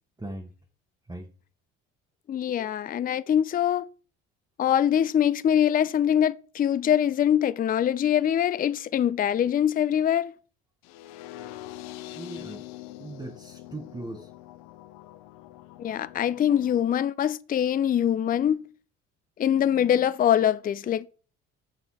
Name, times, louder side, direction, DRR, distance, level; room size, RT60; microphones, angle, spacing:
voice 1, 0.2-0.5 1.1-1.3 12.1-12.7 13.0-14.3, right 2 dB, 10° right, 1.0 m, -39 dB
voice 2, 2.3-3.9 4.6-10.3 15.8-18.7 19.4-21.1, left 10 dB, 25° left, 0.4 m, -23 dB
sound 1, 10.8-16.8, left 15 dB, 80° left, 0.6 m, -44 dB
6.5 x 5.6 x 4.1 m
hypercardioid pair, 60°, 33 cm